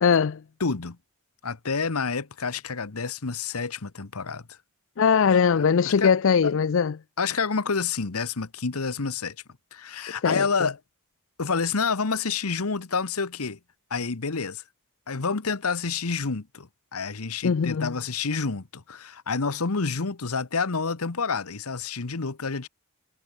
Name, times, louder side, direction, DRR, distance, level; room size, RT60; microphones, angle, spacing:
voice 1, 0.0-0.4 5.0-7.0 10.2-10.4 17.4-17.9, left 6 dB, 60° left, 0.4 m, -21 dB
voice 2, 0.6-1.0 1.4-4.6 5.6-6.1 6.4-6.5 7.2-9.4 9.7-10.8 11.4-13.6 13.9-14.6 15.1-22.7, left 4 dB, 80° left, 1.2 m, -28 dB
head